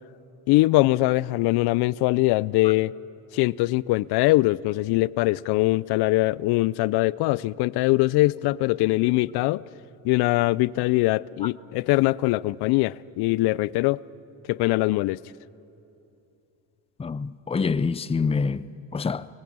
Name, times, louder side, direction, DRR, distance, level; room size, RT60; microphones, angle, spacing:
voice 1, 0.5-2.9 3.3-9.6 10.0-14.0 14.5-15.2, left 19 dB, 90° left, 0.5 m, -22 dB
voice 2, 17.0-19.3, left 5 dB, 15° left, 0.5 m, -26 dB
24.0 x 20.5 x 8.8 m
cardioid pair, 105°, 38 cm